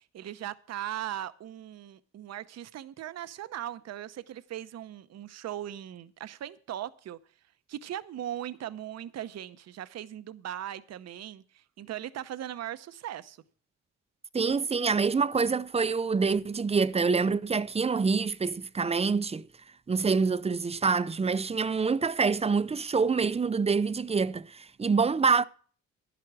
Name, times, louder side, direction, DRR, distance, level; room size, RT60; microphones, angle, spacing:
voice 1, 0.0-7.2 7.7-13.4, right 11 dB, 60° right, 0.8 m, -39 dB
voice 2, 14.3-19.4 19.9-25.4, right 5 dB, 20° right, 0.5 m, -26 dB
11.0 x 11.0 x 4.7 m
cardioid pair, 90°, 30 cm